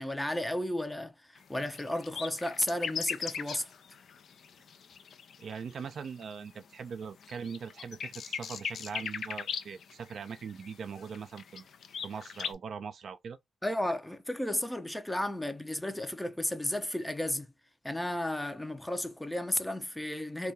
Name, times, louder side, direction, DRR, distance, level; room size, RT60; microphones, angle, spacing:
voice 1, 0.0-3.7 13.6-17.5 17.8-20.5, left 1 dB, 10° left, 0.5 m, -33 dB
sound 1, 1.4-6.4 6.9-12.5, left 7 dB, 70° left, 0.3 m, -39 dB
voice 2, 5.4-11.7 12.0-13.4, right 6 dB, 65° right, 0.4 m, -41 dB
2.2 x 2.2 x 2.7 m
supercardioid pair, 45°, 0 cm